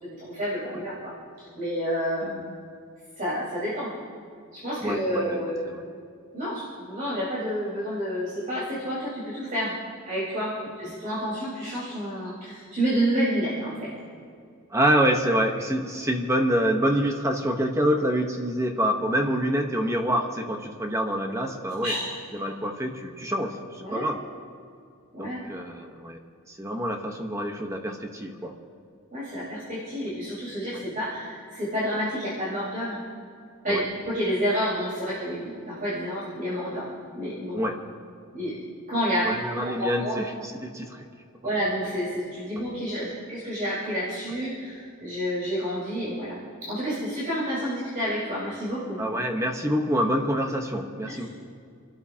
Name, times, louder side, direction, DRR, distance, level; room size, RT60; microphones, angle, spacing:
voice 1, 0.0-2.3 3.2-3.9 4.5-5.6 6.3-9.7 10.1-13.9 21.8-22.1 23.8-24.0 25.1-25.4 29.1-33.0 33.6-37.6 38.3-38.6 38.9-39.3 39.6-40.2 41.4-46.4 46.6-49.0 51.1-51.3, equal, 40° right, -9 dB, 4.7 m, -29 dB
voice 2, 4.8-5.8 14.7-21.9 22.3-24.2 25.2-26.2 26.5-28.6 33.7-33.8 37.5-37.8 39.2-41.0 41.4-41.6 49.0-51.3, equal, 15° right, 3 dB, 1.1 m, -26 dB
30.0 x 12.5 x 2.9 m, 2.4 s
head